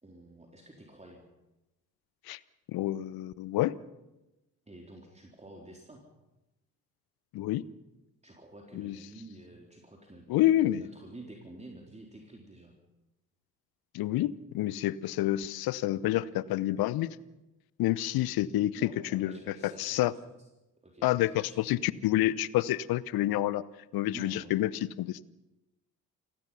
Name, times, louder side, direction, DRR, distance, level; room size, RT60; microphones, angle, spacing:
voice 1, 0.0-1.2 4.7-6.1 8.2-12.7 18.7-20.1 20.8-21.7 24.1-24.7, right 2 dB, 15° right, 1 dB, 3.9 m, -50 dB
voice 2, 2.7-3.7 7.3-7.6 8.7-9.0 10.3-10.8 13.9-17.1 17.8-19.4 19.8-20.1 21.0-23.6 23.9-25.2, left 14 dB, 55° left, 20 dB, 0.9 m, -28 dB
28.5 x 18.0 x 5.7 m, 0.99 s
figure-of-eight pair, 50°, 44 cm